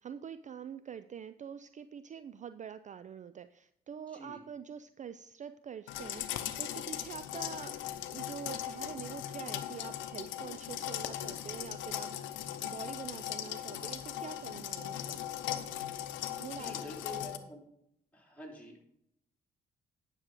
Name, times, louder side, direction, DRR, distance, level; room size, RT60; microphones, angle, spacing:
voice 1, 0.0-7.8 8.1-15.2 16.4-16.9, right 8 dB, 40° right, 13 dB, 0.4 m, -46 dB
voice 2, 4.1-4.4 16.5-17.6 18.1-18.8, equal, 5° left, -2 dB, 3.4 m, -47 dB
sound 1, 5.9-17.4, left 12 dB, 75° left, 0.7 m, -39 dB
9.8 x 6.3 x 4.8 m, 0.75 s
hypercardioid pair, 50°, 20 cm